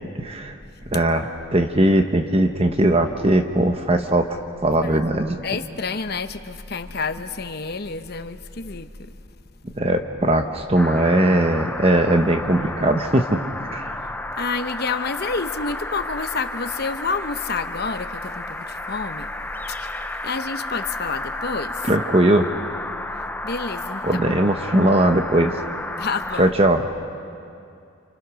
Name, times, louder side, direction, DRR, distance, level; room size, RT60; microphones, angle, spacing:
voice 1, 0.1-0.5 0.9-4.4 4.6-5.4 9.8-13.4 13.7-14.0 21.9-22.5 24.0-25.5 26.4-26.9, right 1 dB, 30° right, 6 dB, 1.1 m, -19 dB
voice 2, 5.4-8.9 14.4-19.3 19.8-21.9 23.4-24.0 26.0-26.5, left 4 dB, 50° left, 9 dB, 1.0 m, -29 dB
sound 1, 10.8-26.4, left 2 dB, 10° left, 0.6 m, -32 dB
30.0 x 27.5 x 6.4 m, 2.4 s
head